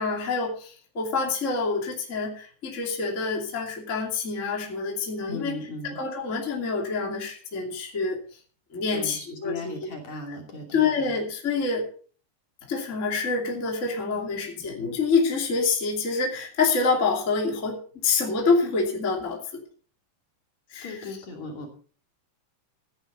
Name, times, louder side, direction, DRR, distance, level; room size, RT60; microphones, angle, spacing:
voice 1, 0.0-5.6 5.8-8.2 8.7-9.7 10.3-10.4 10.7-11.8 12.6-19.6 20.7-21.1, left 4 dB, 20° left, 0 dB, 2.2 m, -27 dB
voice 2, 5.3-6.0 8.9-11.1 20.8-21.7, left 2 dB, 45° left, 1 dB, 3.7 m, -37 dB
16.0 x 10.5 x 4.0 m, 0.42 s
omnidirectional pair, 5.2 m